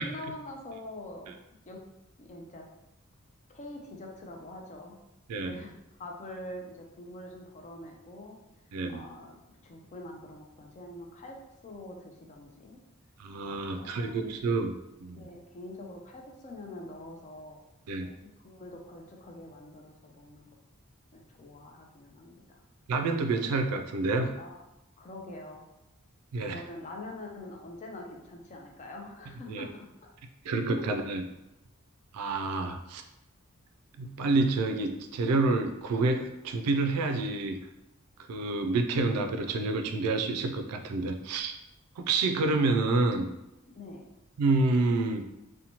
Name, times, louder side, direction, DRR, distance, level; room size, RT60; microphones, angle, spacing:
voice 1, 0.0-1.3 1.7-1.8 2.2-2.7 3.5-5.0 5.4-8.4 8.9-9.4 9.6-12.8 13.3-14.4 15.1-17.6 18.0-20.5 21.1-22.6 24.4-24.6 25.0-25.7 26.5-30.1 30.8-31.2 43.7-44.1, left 1 dB, 30° left, 1 dB, 0.4 m, -45 dB
voice 2, 8.7-9.0 13.2-14.7 15.0-15.2 17.9-18.1 22.9-24.3 26.3-26.6 29.5-29.6 30.4-31.2 32.1-33.0 34.0-37.6 38.3-41.5 42.0-43.3 44.4-45.2, right 3 dB, 85° right, 6 dB, 0.3 m, -28 dB
2.8 x 2.1 x 2.8 m, 0.92 s
head